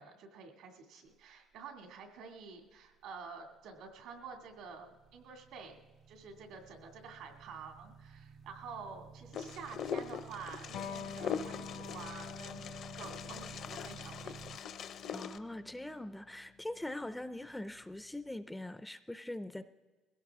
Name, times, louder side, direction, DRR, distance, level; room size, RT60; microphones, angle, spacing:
voice 1, 0.0-5.8 6.1-14.4, right 5 dB, 75° right, 3 dB, 2.3 m, -49 dB
sound 1, 3.7-14.6, right 5 dB, 45° right, 0.6 m, -54 dB
Wind, 9.3-15.4, left 7 dB, 50° left, 0.6 m, -42 dB
Electric guitar, 10.7-17.9, left 7 dB, 90° left, 1.7 m, -48 dB
voice 2, 15.1-19.6, left 1 dB, 5° left, 11 dB, 0.4 m, -42 dB
22.0 x 16.5 x 3.6 m, 1.4 s
cardioid pair, 150°, 0 cm